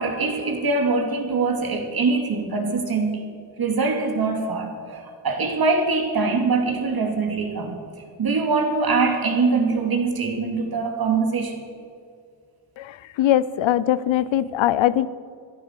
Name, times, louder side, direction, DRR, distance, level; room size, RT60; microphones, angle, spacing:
voice 1, 0.0-3.2 3.6-11.6, right 4 dB, 50° right, 3 dB, 2.8 m, -23 dB
voice 2, 12.8-15.1, left 12 dB, 70° left, 18 dB, 0.7 m, -21 dB
15.0 x 11.0 x 6.7 m, 2.1 s
cardioid pair, 75°, 47 cm